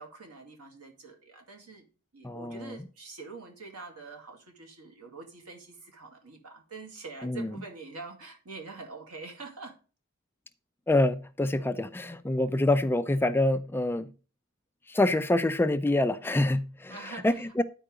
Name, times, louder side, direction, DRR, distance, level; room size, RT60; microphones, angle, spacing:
voice 1, 0.0-1.8 2.1-9.8 16.9-17.6, right 3 dB, 90° right, 2.0 m, -45 dB
voice 2, 2.2-2.8 7.2-7.5 10.9-14.1 14.9-17.0 17.2-17.6, left 1 dB, 10° left, 0.3 m, -26 dB
9.9 x 4.5 x 5.0 m
head